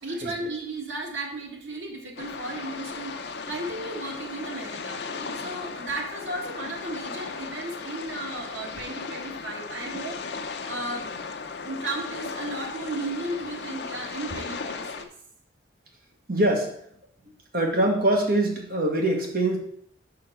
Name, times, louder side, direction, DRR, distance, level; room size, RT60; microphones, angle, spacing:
voice 1, 0.0-5.0 5.3-10.2 10.6-11.1 11.6-15.0, right 2 dB, 85° right, 1 dB, 1.6 m, -34 dB
sound 1, 2.2-15.0, left 4 dB, 60° left, 0.6 m, -36 dB
voice 2, 5.1-5.5 16.3-16.8 17.5-19.6, right 1 dB, 50° right, 1 dB, 1.3 m, -24 dB
5.5 x 5.0 x 5.9 m, 0.67 s
head